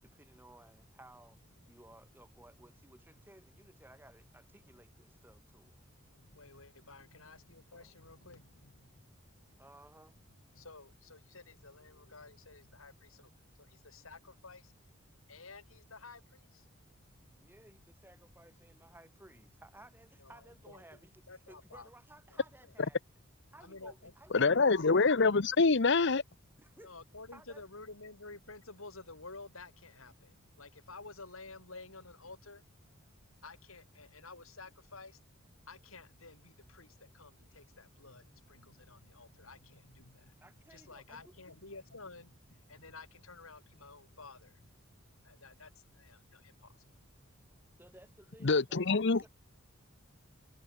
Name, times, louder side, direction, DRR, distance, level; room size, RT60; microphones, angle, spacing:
voice 1, 0.0-1.4 1.7-5.8 7.7-7.9 9.6-10.1 17.3-23.0 23.5-24.6 26.6-26.9 27.3-27.6 40.4-41.3 47.8-49.3, right 1 dB, 10° right, 4.9 m, -58 dB
voice 2, 6.1-8.9 10.5-13.3 13.6-14.7 15.3-16.7 20.2-21.9 22.3-22.8 23.6-24.1 26.8-32.6 33.4-35.2 35.7-40.4 40.7-44.7 45.2-46.8, left 3 dB, 80° left, 4.8 m, -52 dB
voice 3, 24.3-26.2 48.4-49.3, left 4 dB, 60° left, 0.9 m, -25 dB
head